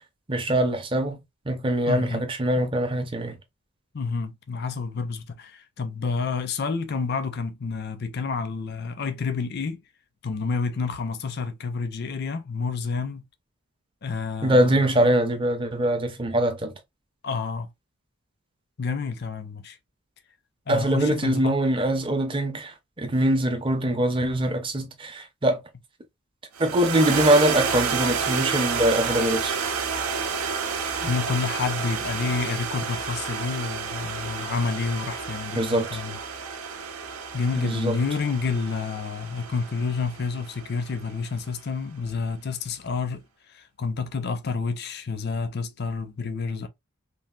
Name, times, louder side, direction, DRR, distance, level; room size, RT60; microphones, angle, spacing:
voice 1, 0.3-1.2 1.5-3.4 14.4-16.7 20.7-25.6 26.6-29.6 35.6-36.0 37.5-38.0, right 1 dB, 25° right, 0.5 m, -23 dB
voice 2, 1.9-2.3 3.9-9.8 10.2-13.2 14.0-15.1 17.2-17.7 18.8-19.8 20.7-21.5 31.0-36.2 37.3-43.2 43.5-46.7, left 5 dB, 50° left, 0.4 m, -29 dB
sound 1, 26.6-41.0, right 6 dB, 85° right, 0.5 m, -30 dB
3.3 x 2.3 x 2.3 m
head